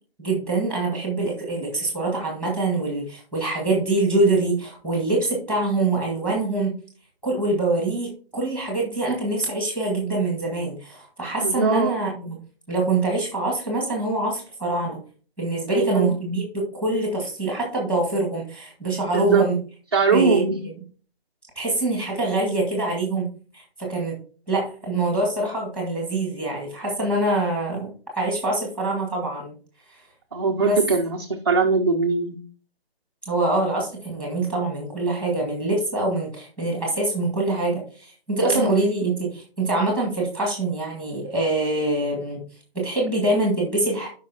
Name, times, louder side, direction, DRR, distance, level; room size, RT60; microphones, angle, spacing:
voice 1, 0.2-6.7 7.2-12.4 12.7-15.0 15.4-19.6 20.1-20.4 21.5-23.3 23.5-24.2 24.5-29.6 29.9-30.0 30.6-30.8 33.3-42.4 42.7-44.1, right 2 dB, 5° left, -1 dB, 1.7 m, -24 dB
voice 2, 11.4-12.0 15.7-16.1 19.1-19.5 19.9-20.6 30.3-32.4 38.4-38.7, right 4 dB, 25° right, 0 dB, 0.5 m, -21 dB
12.5 x 5.4 x 2.8 m, 0.41 s
figure-of-eight pair, 160°, 31 cm